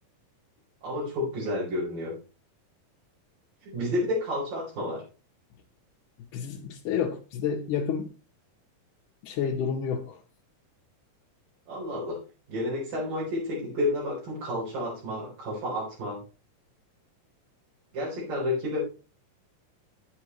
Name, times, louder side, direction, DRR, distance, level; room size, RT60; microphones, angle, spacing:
voice 1, 0.8-2.2 3.6-5.0 11.7-12.2 12.5-16.2 17.9-18.9, left 1 dB, 85° right, 5.9 m, -30 dB
voice 2, 6.3-8.1 9.2-10.2, left 7 dB, 75° left, 2.4 m, -30 dB
11.0 x 9.6 x 3.1 m
omnidirectional pair, 3.9 m